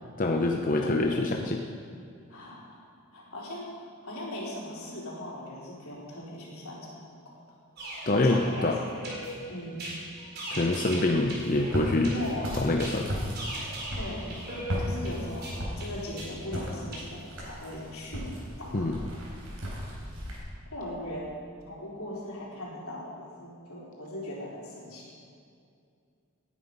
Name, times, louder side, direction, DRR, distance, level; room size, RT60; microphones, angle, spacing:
voice 1, 0.2-1.6 8.1-8.8 10.5-12.1 12.6-13.1 18.7-19.0, left 2 dB, 40° left, 2 dB, 0.7 m, -25 dB
voice 2, 0.7-1.4 2.3-2.8 3.1-6.9 7.2-7.4 8.1-9.0 9.5-10.0 12.1-12.7 14.0-19.0 20.0-20.2 20.7-21.3 21.7-25.1, left 1 dB, 80° left, -5 dB, 4.1 m, -39 dB
sound 1, 7.8-17.0, equal, 50° right, 4.0 m, -40 dB
Walk footsteps, 11.2-20.4, equal, 85° right, 4.4 m, -36 dB
18.5 x 9.6 x 5.5 m, 2.3 s
head